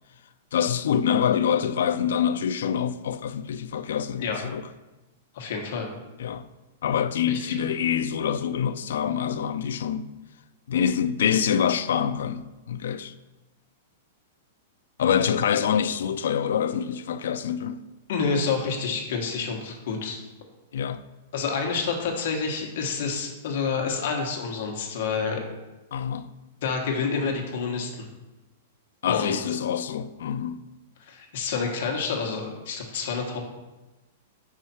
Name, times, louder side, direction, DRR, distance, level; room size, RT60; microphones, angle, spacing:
voice 1, 0.5-4.6 6.2-6.5 6.8-10.1 10.7-13.1 15.0-17.8 20.7-21.0 25.9-26.3 29.0-30.7, left 8 dB, 70° left, 0.4 m, -25 dB
voice 2, 5.3-5.9 7.3-7.5 18.1-20.2 21.3-25.4 26.6-27.9 29.1-29.4 31.1-33.4, left 5 dB, 50° left, 1.2 m, -28 dB
5.6 x 4.9 x 4.2 m
supercardioid pair, 180°, 0 cm